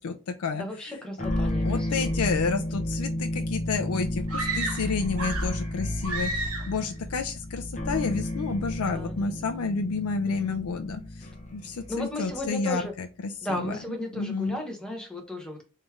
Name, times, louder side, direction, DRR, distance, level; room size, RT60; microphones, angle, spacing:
voice 1, 0.0-1.0 1.6-12.8 13.2-13.8 14.2-14.6, left 4 dB, 75° left, 6 dB, 0.4 m, -30 dB
voice 2, 0.6-2.3 8.9-9.5 10.3-10.6 11.9-12.9 13.4-15.6, left 1 dB, 5° left, 0 dB, 1.0 m, -35 dB
sound 1, 1.2-12.6, left 1 dB, 30° left, 0.7 m, -32 dB
sound 2, 4.3-5.6 6.0-6.8, right 2 dB, 75° right, 1.1 m, -32 dB
3.3 x 3.1 x 3.5 m, 0.32 s
head